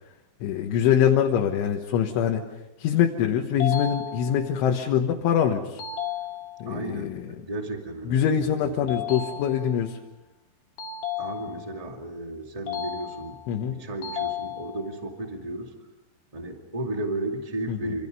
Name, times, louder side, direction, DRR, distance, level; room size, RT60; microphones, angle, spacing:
voice 1, 0.4-2.4 2.8-5.8 6.6-7.3 8.1-10.0 13.5-13.8 17.7-18.0, left 9 dB, 80° left, 2 dB, 3.7 m, -24 dB
sound 1, 3.6-4.6 5.8-6.8 8.9-9.9 10.8-11.8 12.7-13.6 14.0-15.0, left 8 dB, 55° left, 3.6 m, -33 dB
voice 2, 6.6-9.0 11.2-13.4 13.7-15.9 16.3-18.1, right 2 dB, 50° right, 3 dB, 0.4 m, -34 dB
27.5 x 27.0 x 5.5 m, 0.94 s
omnidirectional pair, 5.5 m